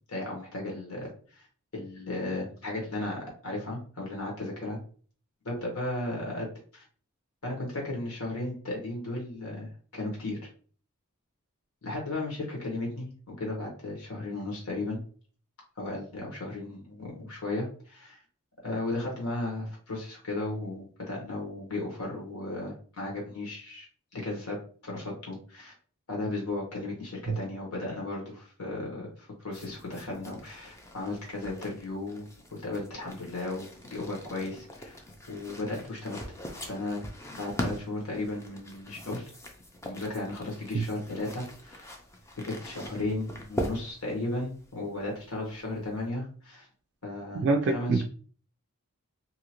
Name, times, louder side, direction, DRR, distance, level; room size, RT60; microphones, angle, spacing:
voice 1, 0.1-1.5 1.7-4.8 5.4-6.8 7.4-10.4 11.8-15.0 15.8-18.2 18.6-23.9 24.1-25.7 26.1-32.2 32.5-36.2 36.7-37.0 37.4-39.3 39.8-41.9 42.4-46.7 47.0-47.5 47.7-48.0, left 2 dB, 80° left, -1 dB, 1.2 m, -35 dB
sound 1, 29.5-46.1, equal, 15° left, 0.4 m, -42 dB
voice 2, 47.4-48.0, right 3 dB, 55° right, 3 dB, 0.3 m, -25 dB
2.8 x 2.4 x 2.9 m, 0.43 s
head